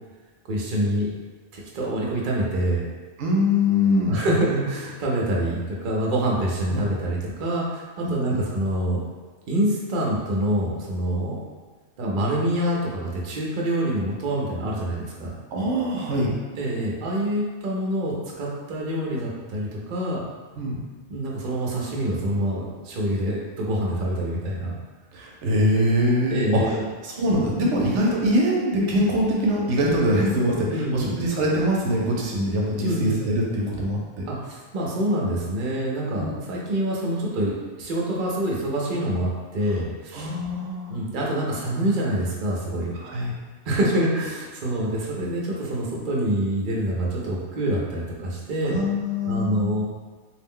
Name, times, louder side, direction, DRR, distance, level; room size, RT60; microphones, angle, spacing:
voice 1, 0.5-1.1 1.5-2.8 4.1-9.0 9.5-11.4 12.0-15.3 16.6-20.2 21.1-24.8 26.3-26.8 30.7-31.1 32.8-33.1 34.3-40.3 40.9-42.9 43.7-48.8 49.3-49.8, right 1 dB, 55° right, -3 dB, 0.6 m, -26 dB
voice 2, 3.2-4.2 6.7-6.9 8.0-8.4 15.5-16.3 20.6-20.8 25.1-26.7 27.0-34.3 36.2-36.3 40.1-41.0 42.9-43.4 48.6-49.7, equal, 75° right, -2 dB, 0.9 m, -23 dB
2.6 x 2.0 x 3.5 m, 1.4 s
omnidirectional pair, 1.3 m